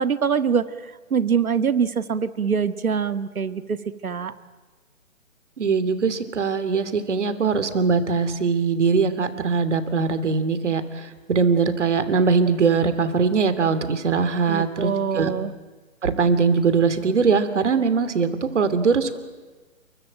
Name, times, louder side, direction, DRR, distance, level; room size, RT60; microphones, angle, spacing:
voice 1, 0.0-3.8 4.0-4.3 14.5-15.5, right 6 dB, 80° right, 12 dB, 1.9 m, -24 dB
voice 2, 5.6-15.3 16.0-18.3 18.5-19.2, right 5 dB, 55° right, 11 dB, 2.9 m, -21 dB
29.0 x 22.5 x 9.1 m, 1.3 s
hypercardioid pair, 170°, 42 cm